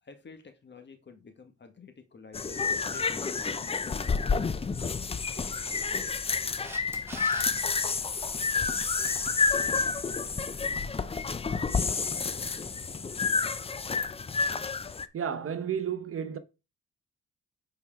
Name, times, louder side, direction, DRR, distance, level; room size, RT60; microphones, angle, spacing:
voice 1, 0.0-4.4, left 4 dB, 35° left, 1.7 m, -51 dB
sound 1, 2.3-15.1, left 5 dB, 20° left, 0.5 m, -29 dB
Camera, 6.6-7.5 14.2-14.3, right 1 dB, 10° right, 1.9 m, -41 dB
voice 2, 15.1-16.4, right 8 dB, 45° right, 0.8 m, -32 dB
8.6 x 4.8 x 3.6 m
cardioid pair, 90°, 30 cm